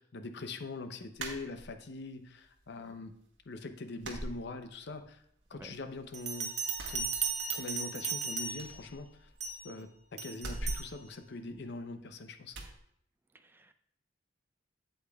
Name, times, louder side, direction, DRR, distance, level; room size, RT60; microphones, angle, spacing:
voice 1, 0.0-3.1 3.5-5.2 5.5-6.5 6.9-7.0 7.5-9.3 9.6-12.5, left 3 dB, 65° left, 8 dB, 0.6 m, -43 dB
sound 1, 1.2-2.1 2.4-3.1 3.4-3.5 4.0-5.1 5.4-6.2 6.6-7.8 8.1-8.2 8.5-9.7 10.3-12.0 12.5-12.8, right 1 dB, 75° right, 1.4 m, -43 dB
Bell, 6.1-8.8 9.4-9.7 10.2-10.9, right 5 dB, 40° right, 0.7 m, -36 dB
voice 2, 13.3-13.7, right 1 dB, 10° right, 8 dB, 0.4 m, -52 dB
8.4 x 8.0 x 2.3 m, 0.70 s
head